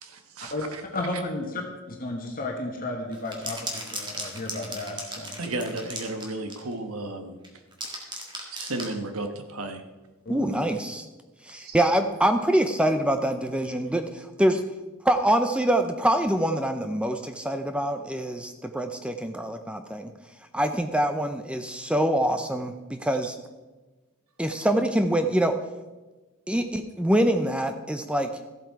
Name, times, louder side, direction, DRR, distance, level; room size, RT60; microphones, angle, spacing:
voice 1, 0.0-0.8 1.1-1.2 5.4-7.4 8.5-9.8 11.5-11.8, right 2 dB, 85° right, 6 dB, 1.3 m, -34 dB
voice 2, 0.9-1.6 1.9-5.3 10.2-10.5, left 2 dB, 40° left, 1 dB, 1.3 m, -33 dB
sound 1, 3.1-6.7 7.4-9.0, right 2 dB, 20° right, 2.0 m, -36 dB
voice 3, 10.3-11.1 11.4-14.6 15.0-20.1 20.5-23.4 24.4-25.6 26.5-28.3, right 1 dB, 5° right, 7 dB, 0.5 m, -25 dB
14.5 x 7.8 x 4.7 m, 1.2 s
head